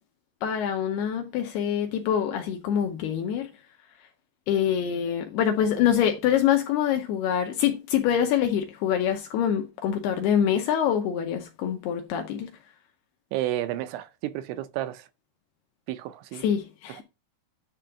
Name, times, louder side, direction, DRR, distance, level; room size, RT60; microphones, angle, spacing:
voice 1, 0.4-3.5 4.5-12.5 16.4-17.0, left 9 dB, 75° left, 2.5 m, -25 dB
voice 2, 13.3-15.1 15.9-16.4 17.0-17.1, right 14 dB, 85° right, 3.0 m, -31 dB
10.0 x 3.6 x 5.6 m
omnidirectional pair, 5.3 m